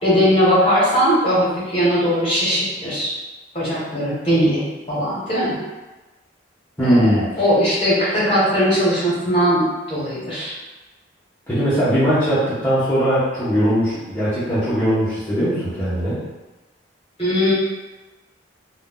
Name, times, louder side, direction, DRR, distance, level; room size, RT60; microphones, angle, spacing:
voice 1, 0.0-3.1 3.5-5.5 6.8-9.6 9.9-10.6 17.2-17.5, equal, 30° left, -8 dB, 1.2 m, -19 dB
voice 2, 6.8-7.3 11.5-16.2, equal, 10° left, -14 dB, 0.7 m, -19 dB
2.5 x 2.2 x 3.6 m, 1.1 s
head